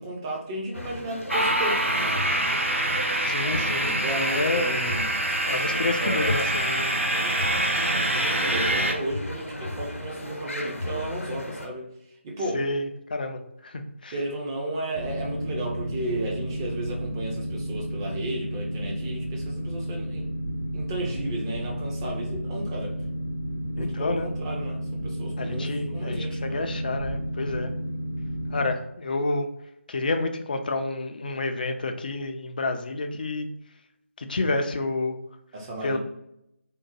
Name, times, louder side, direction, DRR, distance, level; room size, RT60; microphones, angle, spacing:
voice 1, 0.0-1.8 3.8-5.1 6.0-6.4 7.1-11.9 12.2-12.6 14.1-20.3 20.7-22.9 23.8-26.7 35.5-36.0, right 1 dB, 20° right, -2 dB, 0.6 m, -33 dB
sound 1, 0.7-11.7, left 1 dB, 85° left, 0.8 m, -36 dB
sound 2, 1.3-8.9, right 1 dB, 70° right, 0.7 m, -25 dB
voice 2, 3.3-4.8 5.5-7.0 12.5-14.1 23.8-24.3 25.4-27.7 28.5-29.5 29.9-33.5 34.2-35.2 35.8-36.0, left 2 dB, 40° left, 6 dB, 0.4 m, -29 dB
Boat Water vehicle, 14.9-28.7, equal, 50° right, 1.1 m, -32 dB
3.6 x 2.1 x 2.9 m, 0.81 s
figure-of-eight pair, 155°, 7 cm